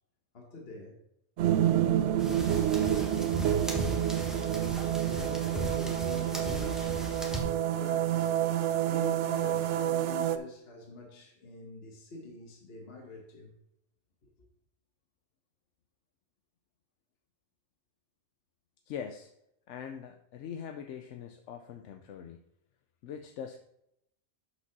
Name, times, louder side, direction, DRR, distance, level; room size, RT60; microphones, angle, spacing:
voice 1, 0.3-1.0 1.6-4.0 4.6-8.3 8.8-13.5 14.2-14.3, left 2 dB, 60° left, 1.4 m, -46 dB
sound 1, 1.4-10.4, right 11 dB, 85° right, 0.9 m, -28 dB
sound 2, 2.2-7.4, right 1 dB, ahead, 1.2 m, -37 dB
voice 2, 18.9-19.3 19.7-22.4 23.0-23.6, left 7 dB, 85° left, 0.9 m, -42 dB
6.6 x 5.2 x 5.9 m
omnidirectional pair, 1.2 m